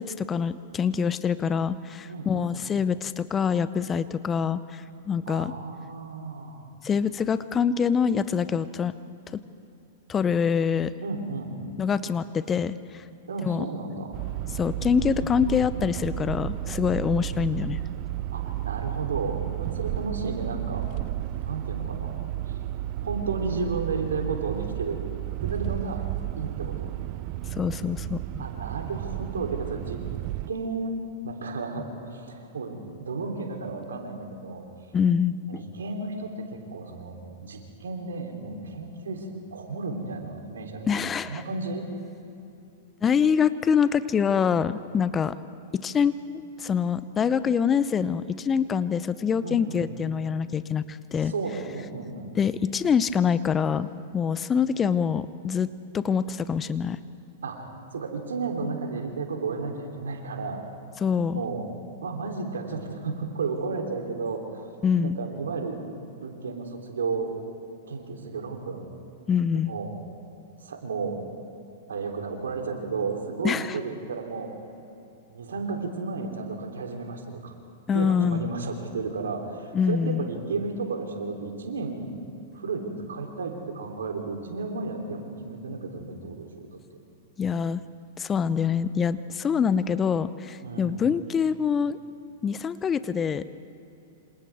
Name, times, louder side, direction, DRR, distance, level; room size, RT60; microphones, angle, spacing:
voice 1, 0.0-5.5 6.8-8.9 9.3-9.4 10.1-10.9 11.8-13.0 13.4-13.7 14.5-17.8 27.5-28.4 34.9-35.6 40.9-41.4 43.0-45.3 45.7-51.3 52.3-53.9 54.1-57.0 61.0-61.4 64.8-65.2 69.3-69.7 73.4-73.7 77.9-78.5 79.7-80.3 87.4-87.8 88.2-92.0 92.4-93.4, left 7 dB, 20° left, 15 dB, 0.7 m, -25 dB
voice 2, 2.1-2.5 5.3-6.7 11.0-11.6 13.3-14.2 18.3-20.9 21.4-22.1 22.5-22.6 23.0-25.0 25.4-26.0 26.4-27.0 28.4-30.0 30.5-30.9 31.2-34.6 35.5-41.9 49.4-49.8 51.2-52.4 57.4-60.6 61.3-61.6 62.0-64.7 65.0-65.8 66.1-67.3 67.9-68.9 69.5-69.9 70.6-71.2 71.9-74.5 75.3-77.5 77.9-82.1 82.5-87.0 90.6-91.0, right 4 dB, 75° right, 2 dB, 3.3 m, -33 dB
sound 1, 14.1-30.5, right 15 dB, 45° right, 0.5 m, -32 dB
27.5 x 27.0 x 3.6 m, 2.8 s
hypercardioid pair, 105°, 0 cm